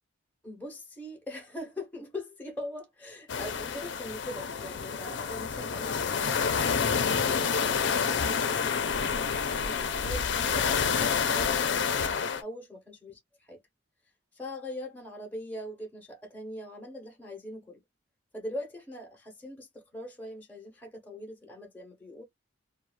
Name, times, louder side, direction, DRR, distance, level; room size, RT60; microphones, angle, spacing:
voice 1, 0.4-13.1 13.5-13.6 14.3-17.8 18.3-22.2, left 1 dB, 10° left, 0.7 m, -42 dB
sound 1, 3.3-12.4, left 6 dB, 65° left, 0.4 m, -28 dB
2.3 x 2.2 x 3.0 m
head